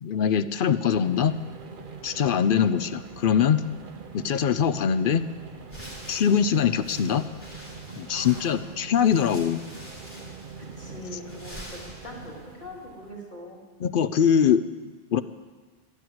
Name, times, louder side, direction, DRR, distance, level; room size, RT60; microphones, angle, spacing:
voice 1, 0.0-1.3 2.0-3.6 4.1-5.3 6.1-7.2 8.0-9.6 13.8-14.6 15.1-15.2, left 8 dB, 60° left, 13 dB, 0.7 m, -22 dB
sound 1, 0.9-13.2, right 5 dB, 55° right, 1.0 m, -43 dB
sound 2, 5.7-12.5, equal, 10° left, 3.3 m, -46 dB
voice 2, 8.1-8.6 10.6-13.6, left 1 dB, 45° left, -3 dB, 3.4 m, -42 dB
13.0 x 11.5 x 7.6 m, 1.4 s
omnidirectional pair, 1.1 m